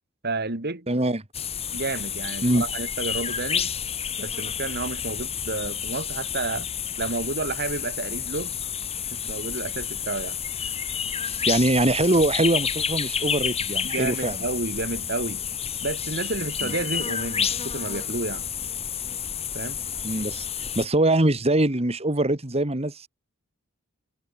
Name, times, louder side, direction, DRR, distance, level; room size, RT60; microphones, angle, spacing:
voice 1, 0.2-0.9 1.7-3.7 4.2-6.7 7.0-8.6 9.1-10.4 13.8-15.4 15.8-18.4 19.5-19.8, right 3 dB, 50° right, 2.4 m, -31 dB
voice 2, 0.9-1.2 2.4-2.6 11.3-14.4 16.6-16.7 20.0-23.1, right 1 dB, 30° right, 2.2 m, -23 dB
sound 1, 1.3-20.9, left 8 dB, 30° left, 2.1 m, -30 dB
head